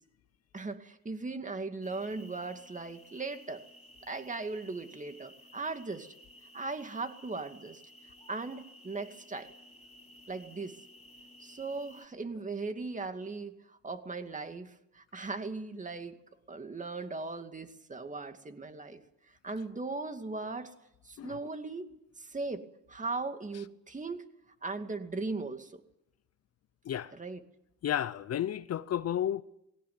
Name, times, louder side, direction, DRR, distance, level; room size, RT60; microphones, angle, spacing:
voice 1, 0.5-3.6 4.0-6.1 6.5-7.8 8.3-9.5 10.3-10.8 11.4-16.2 16.5-19.0 19.3-20.7 21.0-21.9 22.2-22.6 22.9-24.3 24.6-25.8 27.1-27.4, right 3 dB, 25° right, 2.4 m, -38 dB
sound 1, 1.8-12.0, left 1 dB, 20° left, 3.7 m, -55 dB
voice 2, 27.8-29.4, left 10 dB, 55° left, 0.8 m, -32 dB
20.0 x 17.0 x 9.6 m
cardioid pair, 90°, 30 cm